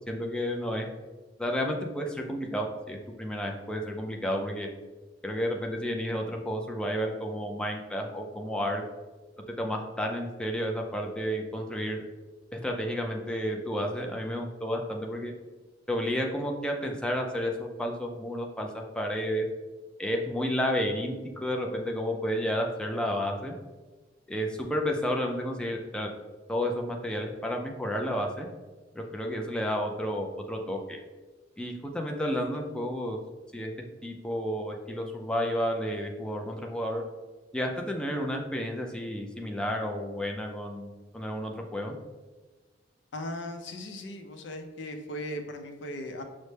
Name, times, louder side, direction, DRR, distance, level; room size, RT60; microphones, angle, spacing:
voice 1, 0.1-0.9 1.4-4.7 5.2-8.8 9.6-12.0 12.5-15.3 15.9-19.5 20.0-23.5 24.3-26.1 26.5-28.5 28.9-31.0 31.6-33.2 33.5-33.7 34.0-37.0 37.5-42.0, equal, 5° left, 1 dB, 0.3 m, -31 dB
voice 2, 43.1-46.2, left 1 dB, 80° left, 5 dB, 0.5 m, -38 dB
5.4 x 2.1 x 3.2 m, 1.2 s
head